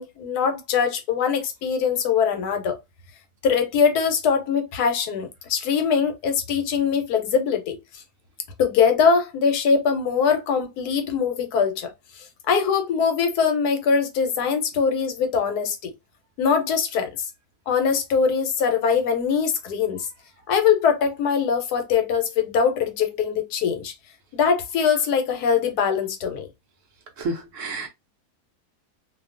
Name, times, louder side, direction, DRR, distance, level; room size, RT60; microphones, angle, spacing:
voice 1, 0.0-2.8 3.4-7.8 8.6-11.9 12.5-15.9 16.4-17.1 17.7-20.1 20.5-23.9 24.3-26.5, left 6 dB, 85° left, 1.2 m, -22 dB
voice 2, 27.2-27.9, right 2 dB, 70° right, 0.8 m, -30 dB
2.7 x 2.2 x 2.4 m
omnidirectional pair, 1.6 m